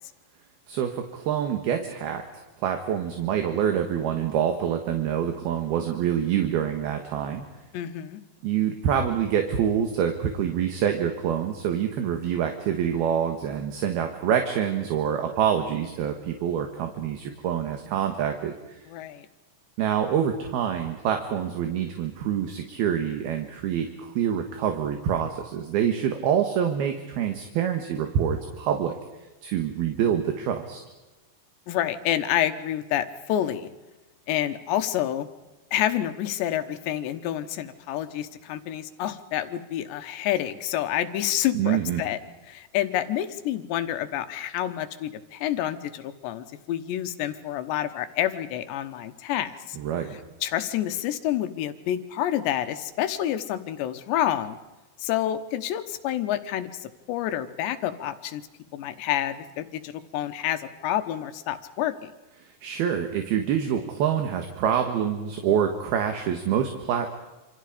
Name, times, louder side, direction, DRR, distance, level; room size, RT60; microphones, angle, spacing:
voice 1, 0.7-2.2 2.6-7.5 8.4-18.8 19.8-28.9 29.4-30.8 41.5-42.0 49.8-50.2 62.6-67.1, right 9 dB, 65° right, 5 dB, 3.2 m, -26 dB
voice 2, 7.7-8.2 18.9-19.3 31.7-33.7 34.3-35.3 35.7-42.2 42.5-49.8 50.4-54.6 55.0-58.4 58.7-62.1, left 12 dB, 75° left, 9 dB, 3.3 m, -28 dB
27.5 x 26.5 x 5.1 m, 1.1 s
omnidirectional pair, 5.2 m